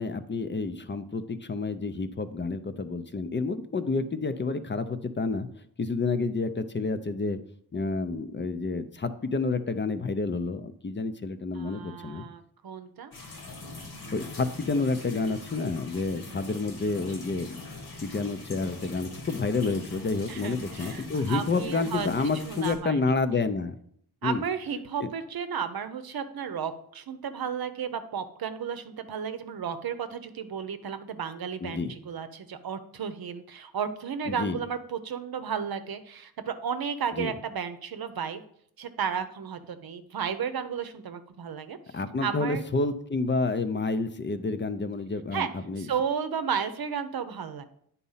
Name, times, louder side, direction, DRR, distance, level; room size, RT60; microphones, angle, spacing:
voice 1, 0.0-5.5 5.8-7.4 7.7-12.2 14.1-17.6 18.0-23.7 24.2-24.4 25.0-25.1 31.6-31.9 34.3-34.6 37.2-37.3 41.9-45.9, left 3 dB, 30° left, 11 dB, 0.6 m, -29 dB
voice 2, 11.5-13.1 20.3-23.0 24.2-38.4 38.8-41.8 42.2-42.6 45.3-45.5 45.8-47.7, right 7 dB, 70° right, 10 dB, 0.8 m, -33 dB
sound 1, 13.1-22.8, left 2 dB, 75° left, 1.7 m, -43 dB
9.9 x 4.2 x 5.6 m, 0.67 s
wide cardioid pair, 125°, 38 cm